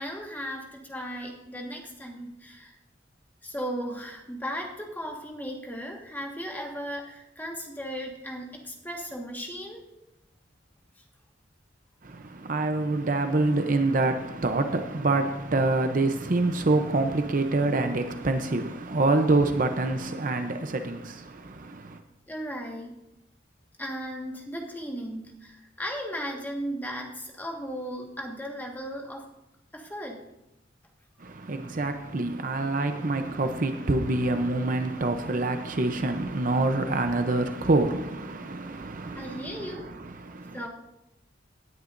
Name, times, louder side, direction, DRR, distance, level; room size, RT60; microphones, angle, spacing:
voice 1, 0.0-2.7 3.4-9.8 22.3-23.0 23.8-29.3 29.7-30.2 39.1-39.9 40.5-40.7, equal, 10° left, 1.6 m, -36 dB
voice 2, 12.0-22.0 31.2-40.6, right 2 dB, 45° right, 0.7 m, -26 dB
17.5 x 9.9 x 2.6 m
head